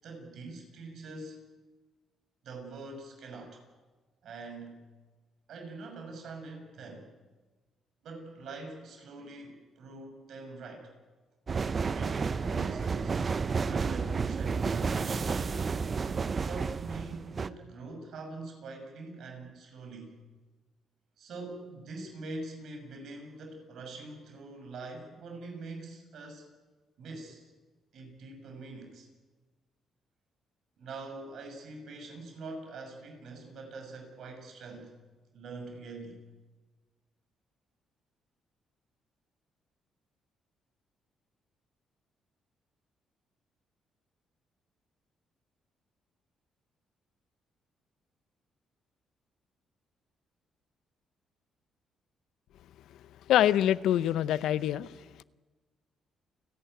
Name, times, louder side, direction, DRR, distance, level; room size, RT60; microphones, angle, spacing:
voice 1, 0.0-1.4 2.4-3.6 4.2-4.8 5.5-7.1 8.0-10.9 11.8-13.2 13.6-15.7 16.4-20.1 21.2-26.5 27.0-27.5 27.9-29.1 30.8-34.9 35.3-36.2, right 3 dB, 70° right, 6.5 m, -44 dB
sound 1, 11.5-17.5, right 5 dB, 40° right, 0.7 m, -31 dB
voice 2, 53.3-55.2, left 11 dB, 80° left, 0.6 m, -26 dB
29.5 x 11.5 x 9.3 m
cardioid pair, 90°, 0 cm